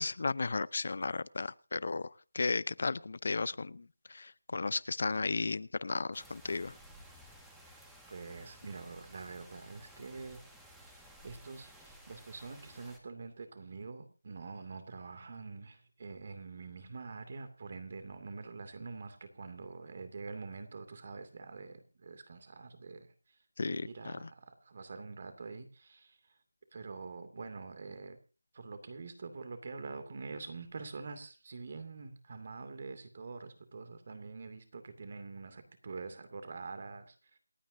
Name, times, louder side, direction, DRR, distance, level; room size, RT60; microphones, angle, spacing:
voice 1, 0.0-6.7 23.6-24.1, left 3 dB, 50° left, 20 dB, 0.7 m, -34 dB
sound 1, 6.1-13.0, equal, ahead, 1.8 m, -56 dB
voice 2, 7.6-10.4 10.7-23.4 23.6-26.4 26.7-28.2 28.5-37.4, right 4 dB, 40° right, 9 dB, 2.5 m, -46 dB
28.0 x 9.3 x 2.7 m, 0.34 s
figure-of-eight pair, 170°, 0 cm